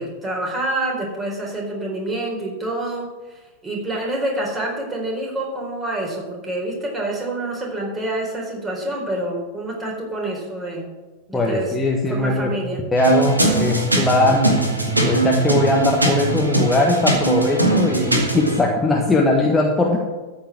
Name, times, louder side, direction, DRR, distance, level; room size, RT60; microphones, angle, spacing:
voice 1, 0.0-10.9 11.3-11.8 12.1-12.9, right 1 dB, 15° right, -1 dB, 4.3 m, -27 dB
voice 2, 11.3-12.5 12.9-14.6 15.0-20.0, left 2 dB, 10° left, -1 dB, 1.6 m, -19 dB
sound 1, 13.0-18.6, right 2 dB, 80° right, 2.1 m, -20 dB
14.0 x 5.7 x 7.5 m, 1.2 s
figure-of-eight pair, 90°, 0 cm